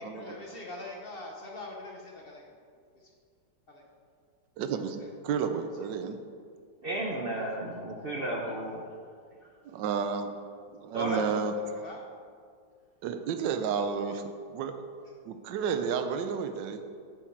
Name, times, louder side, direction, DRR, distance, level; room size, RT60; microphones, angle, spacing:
voice 1, 0.1-2.5 2.9-3.1 3.7-3.8 5.0-5.1 5.8-6.2 11.0-12.1, left 2 dB, 45° left, 0 dB, 0.8 m, -43 dB
voice 2, 4.6-6.2 9.6-10.3 10.7-11.5 13.0-14.2 14.5-14.7 15.2-16.8, right 6 dB, 75° right, 8 dB, 1.3 m, -31 dB
voice 3, 6.8-8.9 10.9-11.2, right 1 dB, 55° right, -1 dB, 0.6 m, -33 dB
8.9 x 6.5 x 4.6 m, 2.1 s
omnidirectional pair, 2.0 m